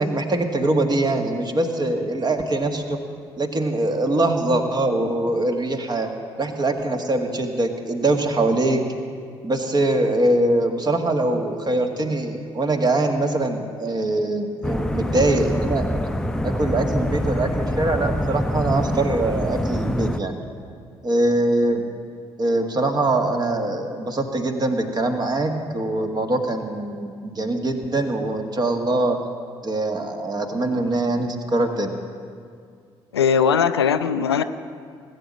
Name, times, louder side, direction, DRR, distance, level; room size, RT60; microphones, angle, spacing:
voice 1, 0.0-3.0 3.4-6.1 6.4-8.8 9.4-15.8 16.4-20.3 21.0-21.9 22.4-29.2 29.6-31.9, right 2 dB, 30° right, 5 dB, 1.7 m, -23 dB
sound 1, 14.6-20.2, equal, 5° left, 0.7 m, -25 dB
voice 2, 33.1-34.4, left 7 dB, 85° left, 11 dB, 0.4 m, -19 dB
19.0 x 8.5 x 7.5 m, 2.2 s
figure-of-eight pair, 45°, 13 cm